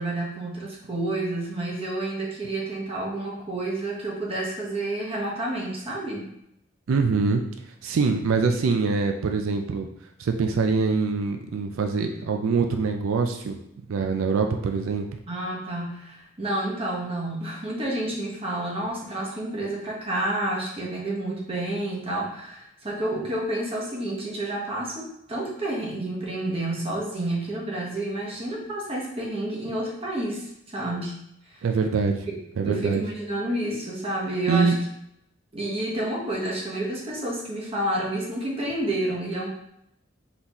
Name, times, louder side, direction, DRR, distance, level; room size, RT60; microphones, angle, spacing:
voice 1, 0.0-6.3 15.3-31.1 31.5-31.7 32.6-34.7 35.5-39.5, right 1 dB, 30° right, -3 dB, 1.0 m, -29 dB
voice 2, 6.9-7.4 7.8-9.9 10.2-13.6 13.9-15.1 31.6-32.3 32.6-33.0 34.5-34.8, right 4 dB, 90° right, 5 dB, 0.4 m, -24 dB
4.0 x 3.7 x 3.0 m, 0.77 s
head